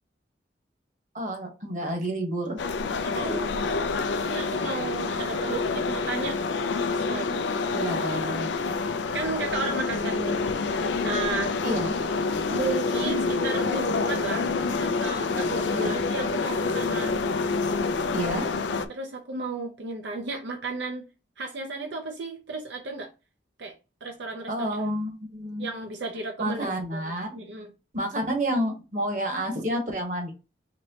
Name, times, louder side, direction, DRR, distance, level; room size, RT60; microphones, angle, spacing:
voice 1, 1.1-2.7 3.1-3.4 5.1-5.3 7.7-8.5 11.6-12.0 15.7-15.9 18.1-18.5 24.5-25.7 26.4-27.3 27.9-30.3, right 1 dB, 45° right, 1.2 m, -30 dB
sound 1, 2.6-18.9, left 4 dB, 80° left, 0.4 m, -27 dB
voice 2, 3.0-3.6 4.2-6.4 6.8-7.4 9.1-10.4 11.0-11.6 12.5-14.5 14.8-17.2 18.9-21.1 21.4-23.1 23.6-23.7 24.0-24.8 25.6-27.0 27.3-27.7, right 3 dB, 75° right, 0.6 m, -34 dB
4.2 x 3.1 x 2.8 m
head